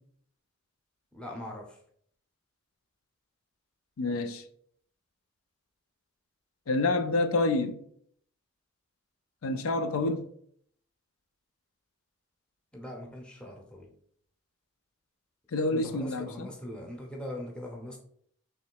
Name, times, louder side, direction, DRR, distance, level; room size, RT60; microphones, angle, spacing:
voice 1, 1.1-1.8 12.7-13.9 15.7-18.0, left 1 dB, 5° left, 0.7 m, -41 dB
voice 2, 4.0-4.4 6.7-7.8 9.4-10.3 15.5-16.5, left 2 dB, 90° left, 0.5 m, -28 dB
3.2 x 3.1 x 4.6 m
head